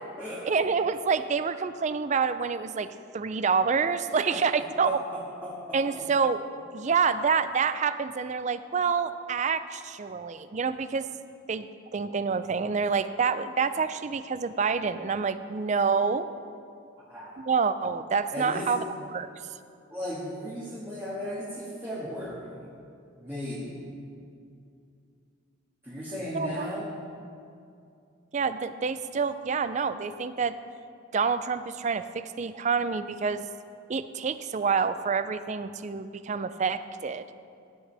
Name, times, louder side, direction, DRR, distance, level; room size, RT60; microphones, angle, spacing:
voice 1, 0.4-2.9 3.1-5.0 5.7-6.4 6.7-11.1 11.5-11.7 11.9-16.3 17.5-19.3 26.3-26.6 28.3-30.6 31.1-33.4 33.9-37.2, right 5 dB, 35° right, 12 dB, 0.4 m, -27 dB
voice 2, 4.8-6.1 17.1-17.5 18.3-18.8 19.9-22.7 23.2-23.8 25.8-26.9, equal, 15° right, -8 dB, 1.8 m, -36 dB
16.0 x 10.5 x 3.4 m, 2.5 s
head